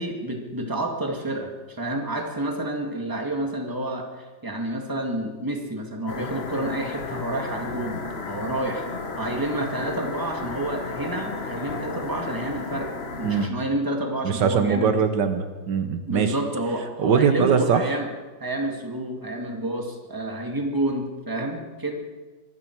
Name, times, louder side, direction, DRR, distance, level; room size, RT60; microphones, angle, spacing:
voice 1, 0.0-8.9 9.2-12.9 13.2-14.9 16.1-18.1 18.4-21.9, right 1 dB, 10° right, 2 dB, 2.0 m, -29 dB
sound 1, 6.1-13.5, left 4 dB, 40° left, 1.3 m, -33 dB
voice 2, 14.2-16.3 17.0-18.0, right 6 dB, 75° right, 8 dB, 1.6 m, -22 dB
23.5 x 12.5 x 4.6 m, 1.3 s
omnidirectional pair, 1.9 m